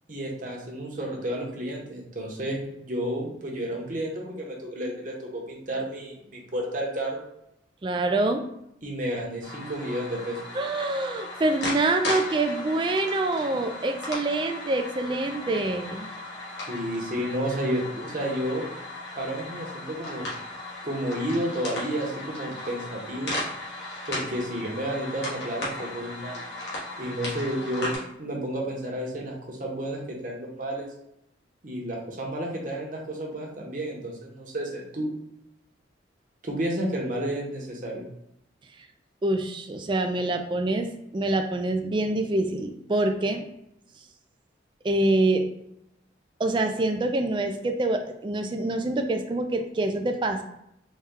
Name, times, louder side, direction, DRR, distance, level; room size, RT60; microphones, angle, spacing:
voice 1, 0.1-7.2 8.8-10.4 16.7-18.7 19.2-20.3 20.8-23.3 24.1-26.4 27.0-30.9 31.6-35.1 36.4-38.1, right 1 dB, 45° right, -1 dB, 0.9 m, -31 dB
voice 2, 7.8-8.4 10.5-16.1 39.2-43.4 44.8-45.4 46.4-50.4, right 2 dB, 25° right, 5 dB, 0.3 m, -26 dB
sound 1, 9.4-28.0, left 2 dB, 65° left, 1.4 m, -36 dB
4.1 x 2.3 x 3.6 m, 0.79 s
head